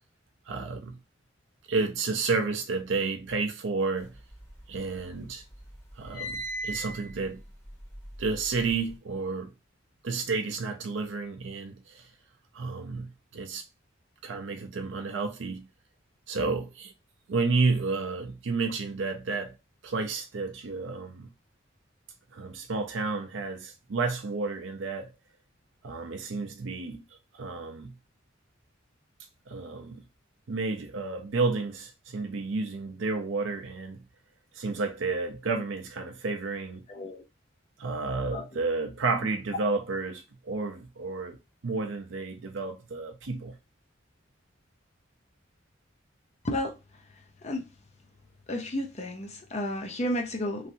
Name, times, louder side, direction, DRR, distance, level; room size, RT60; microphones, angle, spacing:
voice 1, 0.5-1.0 1.7-4.2 4.7-5.4 5.9-7.4 8.2-9.5 10.0-12.1 12.5-13.6 14.2-15.7 16.3-16.9 17.3-19.6 19.8-21.3 22.3-25.1 25.8-27.0 27.3-27.9 29.5-30.0 30.5-34.0 34.5-36.8 37.8-41.4 41.6-43.6, right 4 dB, 70° right, 0.5 m, -31 dB
sound 1, 4.1-5.2 5.5-8.9, right 1 dB, 15° left, 1.0 m, -39 dB
voice 2, 36.9-37.2 38.3-38.6 39.1-39.3 46.4-46.8 47.4-47.7 48.5-50.7, left 1 dB, 35° left, 0.6 m, -32 dB
3.2 x 2.7 x 2.6 m
head